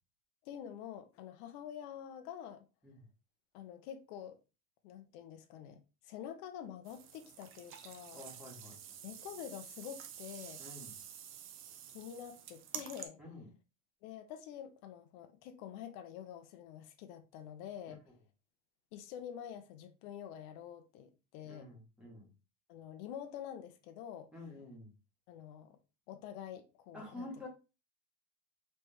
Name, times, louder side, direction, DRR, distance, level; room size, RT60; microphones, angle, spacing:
voice 1, 0.4-2.7 3.5-4.4 4.8-8.2 9.0-10.6 11.9-13.2 14.0-18.0 18.9-21.7 22.7-24.3 25.3-25.8 26.1-27.3, left 9 dB, 85° left, 0.8 m, -47 dB
sound 1, 6.8-13.1, right 9 dB, 45° right, 0.6 m, -49 dB
voice 2, 8.1-9.0 10.6-11.0 13.2-13.5 21.4-22.3 24.3-24.9 26.9-27.5, left 2 dB, 5° right, 1.5 m, -49 dB
4.2 x 3.3 x 3.4 m
cardioid pair, 170°, 30 cm